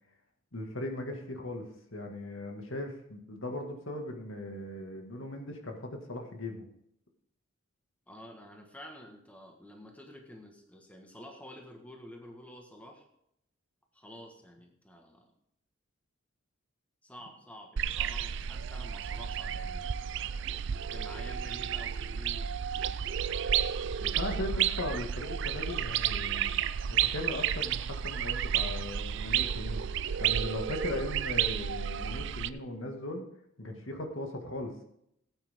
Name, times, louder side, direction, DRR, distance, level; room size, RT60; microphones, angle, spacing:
voice 1, 0.5-1.6 1.9-6.6 24.0-26.5 26.9-33.2 33.6-34.7, left 1 dB, 65° left, 3 dB, 2.0 m, -38 dB
voice 2, 8.1-13.1 13.9-15.3 17.0-19.9 20.9-22.5 24.0-24.7, equal, 5° left, 2 dB, 1.5 m, -50 dB
sound 1, 17.8-32.5, right 9 dB, 60° right, 0.4 m, -32 dB
17.0 x 9.0 x 3.7 m, 0.74 s
head